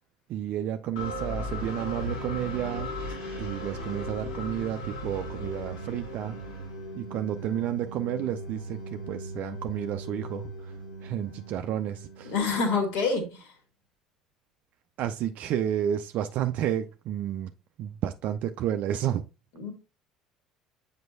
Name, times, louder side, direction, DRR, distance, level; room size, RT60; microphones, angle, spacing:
voice 1, 0.3-2.9 3.4-6.4 7.0-12.3 15.0-17.5 17.8-19.3, right 10 dB, 50° right, 0.4 m, -31 dB
sound 1, 0.9-12.7, equal, 80° left, 2.4 m, -37 dB
voice 2, 12.2-13.5 19.6-19.7, left 4 dB, 60° left, 2.1 m, -27 dB
7.6 x 5.1 x 2.5 m
figure-of-eight pair, 60°, 3 cm